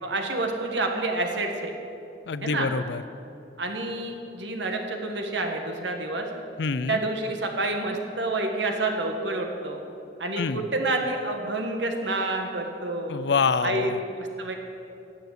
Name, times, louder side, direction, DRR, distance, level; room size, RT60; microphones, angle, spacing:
voice 1, 0.0-1.7 2.4-2.7 3.6-6.3 6.9-9.8 10.2-13.2 13.6-13.9 14.2-14.6, right 2 dB, 85° right, 3 dB, 1.6 m, -28 dB
voice 2, 2.3-3.0 6.6-7.0 10.4-10.7 13.1-14.0, left 5 dB, 70° left, 14 dB, 0.5 m, -26 dB
18.0 x 6.9 x 8.2 m, 2.8 s
head